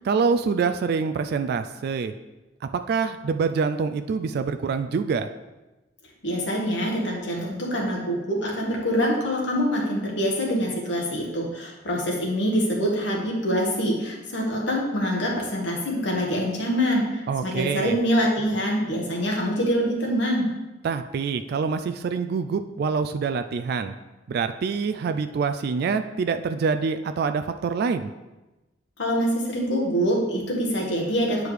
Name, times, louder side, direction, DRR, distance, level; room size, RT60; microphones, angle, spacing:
voice 1, 0.1-2.1 2.9-5.3 17.3-18.0 20.8-23.9 24.3-28.1, right 5 dB, 60° right, 9 dB, 0.3 m, -25 dB
voice 2, 6.2-20.5 29.0-31.5, equal, 70° left, -1 dB, 1.5 m, -25 dB
8.8 x 4.7 x 3.3 m, 1.1 s
head